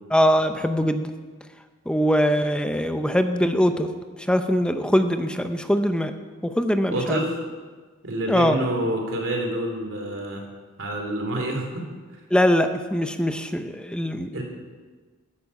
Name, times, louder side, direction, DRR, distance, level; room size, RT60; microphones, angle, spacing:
voice 1, 0.1-1.1 1.9-3.9 4.3-6.1 6.4-7.2 8.3-8.6 12.3-14.4, equal, 5° left, 7 dB, 0.7 m, -22 dB
voice 2, 6.9-7.3 8.0-10.5 10.8-11.9 14.3-14.4, right 1 dB, 60° right, 2 dB, 2.9 m, -27 dB
15.5 x 10.5 x 5.4 m, 1.4 s
head